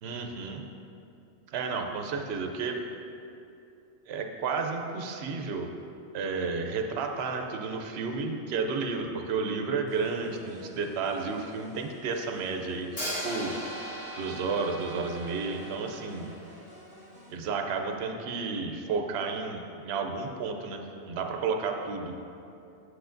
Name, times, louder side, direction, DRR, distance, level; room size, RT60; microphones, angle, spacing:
voice 1, 0.0-0.6 1.5-2.8 4.1-5.7 6.1-13.5 14.2-16.3 17.3-22.1, right 4 dB, 70° right, 4 dB, 0.8 m, -32 dB
sound 1, 9.9-17.4, right 1 dB, 10° right, 0.7 m, -52 dB
Hi-hat, 13.0-16.9, equal, 75° left, 2.0 m, -39 dB
7.9 x 6.1 x 2.5 m, 2.7 s
omnidirectional pair, 1.2 m